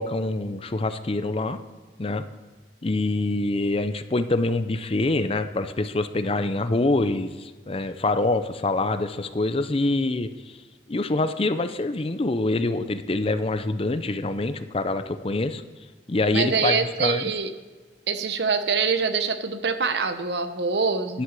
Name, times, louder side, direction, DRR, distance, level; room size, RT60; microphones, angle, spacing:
voice 1, 0.0-1.6 2.0-2.2 2.8-10.3 10.9-15.6 16.1-17.3 21.1-21.2, left 2 dB, 35° left, 10 dB, 0.6 m, -25 dB
voice 2, 16.3-17.5 18.1-21.2, right 5 dB, 70° right, 10 dB, 0.9 m, -24 dB
11.5 x 5.9 x 7.5 m, 1.4 s
head